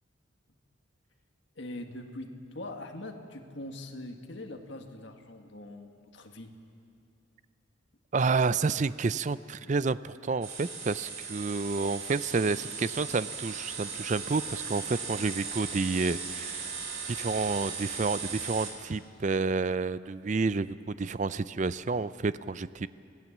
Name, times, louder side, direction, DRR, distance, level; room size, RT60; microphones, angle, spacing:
voice 1, 1.5-2.3 2.5-6.5 9.6-9.8, left 1 dB, 65° left, 4 dB, 1.7 m, -42 dB
voice 2, 8.1-16.7 17.1-22.9, right 4 dB, 35° right, 16 dB, 0.4 m, -30 dB
sound 1, 10.4-18.7, right 5 dB, 90° right, 3.5 m, -38 dB
25.0 x 17.0 x 7.3 m, 2.5 s
head